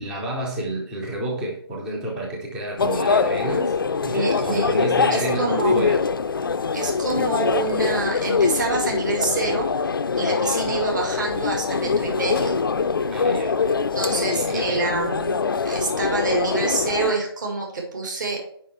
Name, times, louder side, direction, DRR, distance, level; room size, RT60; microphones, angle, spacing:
voice 1, 0.0-3.7 4.0-6.0 13.1-13.6 14.2-14.7, right 1 dB, 5° right, -1 dB, 0.5 m, -30 dB
sound 1, 2.8-17.1, left 5 dB, 60° left, 0.4 m, -23 dB
voice 2, 4.1-4.8 5.1-5.9 6.7-9.7 10.2-12.6 13.9-15.4 15.6-18.4, right 3 dB, 50° right, 0 dB, 2.0 m, -26 dB
5.5 x 5.1 x 4.4 m, 0.64 s
figure-of-eight pair, 155°, 13 cm